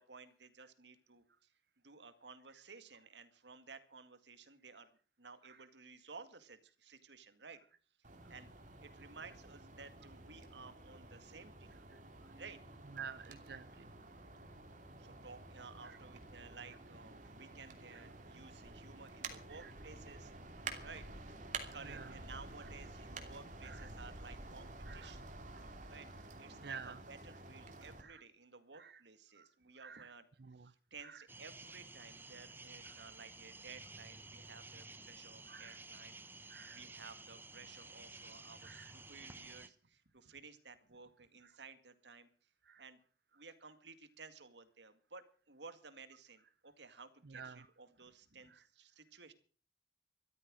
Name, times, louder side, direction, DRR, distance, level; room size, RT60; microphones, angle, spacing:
voice 1, 0.0-1.5 1.8-4.9 5.2-7.6 8.3-8.5 8.8-11.8 12.3-12.6 15.0-20.3 20.8-21.4 21.7-25.3 25.9-26.1 26.4-30.3 30.6-42.3 42.8-43.0 43.3-49.3, right 4 dB, 85° right, 10 dB, 2.1 m, -55 dB
sound 1, 8.0-28.0, right 3 dB, 45° right, 2.9 m, -51 dB
voice 2, 11.9-12.3 12.9-13.9 15.8-16.0 17.9-18.0 19.5-19.7 20.7-20.9 21.8-22.1 23.6-23.9 24.9-25.1 26.6-27.0 28.0-28.2 28.7-29.0 29.4-29.5 29.8-30.1 30.4-30.7 31.0-31.2 32.9-33.0 35.5-35.8 36.5-36.8 38.6-38.9 41.4-41.5 42.6-42.9 47.3-47.7 48.5-48.6, right 6 dB, 60° right, 13 dB, 0.6 m, -51 dB
sound 2, 31.3-39.7, right 3 dB, 10° right, 1.0 m, -53 dB
14.0 x 13.5 x 6.3 m, 0.41 s
head